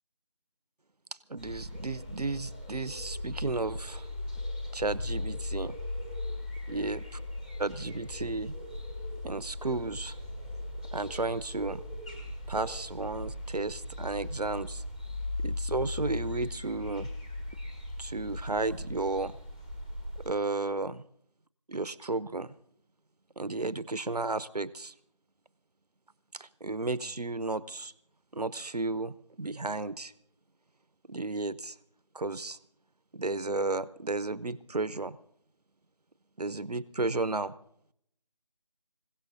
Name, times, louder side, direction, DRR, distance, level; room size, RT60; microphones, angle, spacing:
voice 1, 1.3-4.1 4.7-5.8 6.7-7.2 7.6-8.5 9.2-10.1 10.9-11.8 12.5-14.8 15.4-17.1 18.0-19.3 20.2-21.0 21.7-22.5 23.4-24.9 26.3-27.9 28.3-30.1 31.1-31.8 32.1-32.6 33.1-35.2 36.4-37.5, right 3 dB, 75° right, 15 dB, 0.8 m, -33 dB
sound 1, 1.4-20.3, left 1 dB, 10° left, 1.2 m, -38 dB
27.0 x 16.5 x 2.6 m, 0.71 s
figure-of-eight pair, 165°, 21 cm